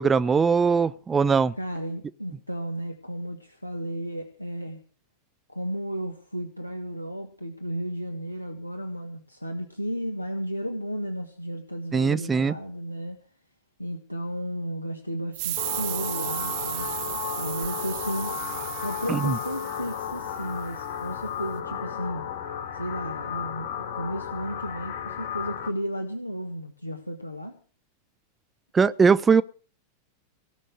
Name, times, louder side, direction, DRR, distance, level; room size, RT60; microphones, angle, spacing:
voice 1, 0.0-1.5 11.9-12.5 19.1-19.4 28.7-29.4, right 5 dB, 15° right, 0.8 m, -21 dB
voice 2, 1.6-4.8 5.5-13.2 13.8-18.4 18.8-22.3 22.7-27.6, equal, 90° left, 1.6 m, -34 dB
sound 1, 15.3-20.6, right 20 dB, 45° right, 0.7 m, -34 dB
sound 2, 15.6-25.7, left 9 dB, 55° left, 3.2 m, -34 dB
18.0 x 6.4 x 9.0 m
figure-of-eight pair, 90°, 0 cm